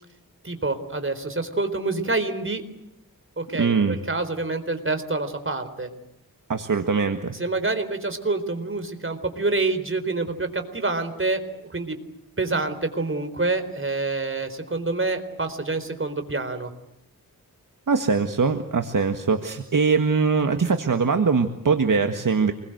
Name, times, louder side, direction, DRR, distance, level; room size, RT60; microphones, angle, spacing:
voice 1, 0.4-2.6 3.4-5.9 7.4-12.0 12.4-16.7, right 3 dB, 35° right, 9 dB, 4.2 m, -27 dB
voice 2, 3.5-4.0 6.5-7.4 17.9-22.5, right 5 dB, 60° right, 6 dB, 1.8 m, -22 dB
27.5 x 22.0 x 8.0 m, 0.84 s
wide cardioid pair, 90°, 36 cm